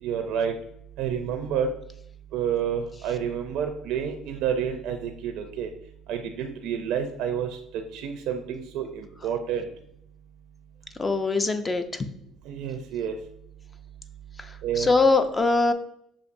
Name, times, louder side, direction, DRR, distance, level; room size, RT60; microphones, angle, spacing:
voice 1, 0.0-0.5 1.0-1.7 2.3-5.7 6.1-9.7 12.5-13.2 14.6-14.9, right 8 dB, 70° right, 5 dB, 0.4 m, -29 dB
voice 2, 11.0-11.8 14.4-15.7, left 3 dB, 20° left, 9 dB, 0.4 m, -22 dB
6.5 x 2.5 x 2.6 m, 0.72 s
supercardioid pair, 90°, 0 cm